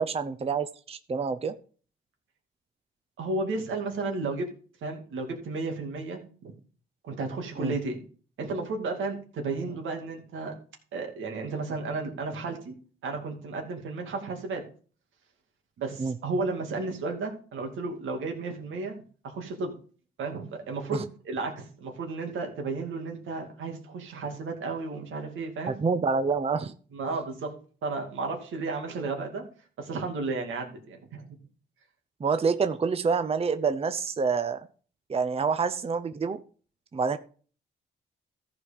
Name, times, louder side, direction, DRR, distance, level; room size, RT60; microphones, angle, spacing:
voice 1, 0.0-1.5 7.6-7.7 16.0-16.1 20.9-21.0 25.7-26.7 32.2-34.6 35.1-36.4 36.9-37.2, right 5 dB, 30° right, 9 dB, 0.6 m, -27 dB
voice 2, 3.2-4.5 4.8-6.5 7.0-8.0 8.4-10.5 10.9-12.8 13.0-14.6 15.8-18.9 19.2-19.8 20.2-25.8 26.9-27.5 27.8-29.4 29.8-31.4, right 3 dB, 85° right, 2 dB, 2.5 m, -33 dB
14.0 x 4.9 x 5.3 m, 0.42 s
cardioid pair, 80°, 20 cm